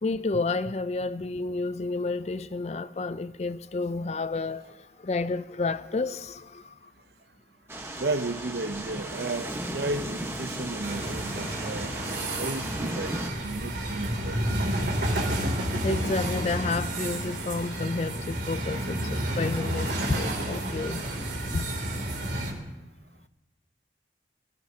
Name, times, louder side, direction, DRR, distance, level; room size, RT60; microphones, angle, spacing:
voice 1, 0.0-6.9 15.2-15.3 15.8-21.0 21.5-21.7, left 3 dB, 35° left, 0.4 m, -30 dB
sound 1, 7.7-13.3, right 1 dB, 15° right, 1.2 m, -35 dB
voice 2, 8.0-11.9 12.4-14.4 15.1-15.2 22.4-22.6, right 2 dB, 65° right, 0.7 m, -33 dB
sound 2, 10.8-22.5, right 1 dB, 85° right, 2.8 m, -30 dB
22.5 x 15.5 x 2.8 m
head